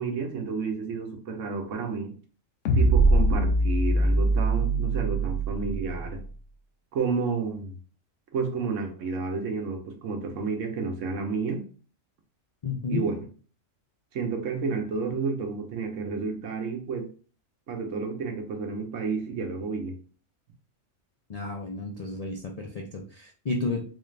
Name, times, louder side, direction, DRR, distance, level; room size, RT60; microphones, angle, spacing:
voice 1, 0.0-2.1 2.7-6.2 6.9-7.7 8.3-11.6 12.9-13.3 14.1-17.1 17.7-19.9, right 5 dB, 70° right, 4 dB, 1.1 m, -31 dB
sound 1, 2.6-6.1, right 2 dB, 70° left, 1.0 m, -22 dB
voice 2, 12.6-13.0 21.3-23.8, left 3 dB, 55° left, 0 dB, 0.4 m, -32 dB
3.9 x 2.5 x 3.2 m, 0.39 s
omnidirectional pair, 1.4 m